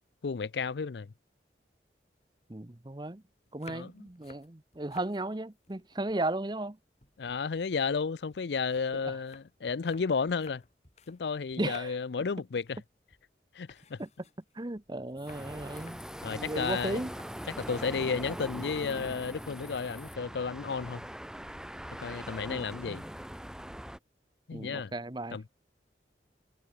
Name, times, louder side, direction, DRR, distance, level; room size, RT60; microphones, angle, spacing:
voice 1, 0.2-1.1 3.7-4.0 7.2-10.6 11.1-12.8 13.5-14.0 16.2-17.0 17.6-21.0 22.0-23.0 24.5-24.9 25.3-25.5, left 5 dB, 75° left, 0.5 m, -33 dB
voice 2, 2.5-3.2 3.5-6.8 9.0-9.1 11.6-12.0 14.0-14.1 14.5-17.1 22.5-22.9 24.5-25.4, right 2 dB, 25° right, 0.8 m, -35 dB
sound 1, 3.5-5.2 5.5-6.7 7.0-11.2 11.5-12.1 12.5-12.8 13.1-13.3 13.7-18.0 18.6-19.0 19.3-19.7, left 4 dB, 40° left, 3.0 m, -57 dB
sound 2, 15.2-20.2, left 3 dB, 15° left, 7.3 m, -54 dB
sound 3, 15.3-24.0, equal, 5° right, 1.8 m, -42 dB
head